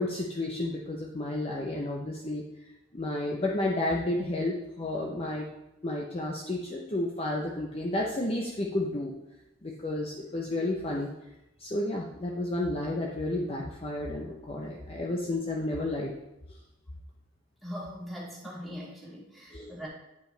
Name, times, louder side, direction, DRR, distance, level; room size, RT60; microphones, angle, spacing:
voice 1, 0.0-2.4 2.9-5.5 5.8-9.1 9.6-11.1 11.6-16.1 19.5-19.8, left 1 dB, 30° left, -2 dB, 0.7 m, -31 dB
voice 2, 17.6-19.9, equal, ahead, -6 dB, 2.2 m, -41 dB
9.3 x 5.4 x 3.3 m, 0.91 s
head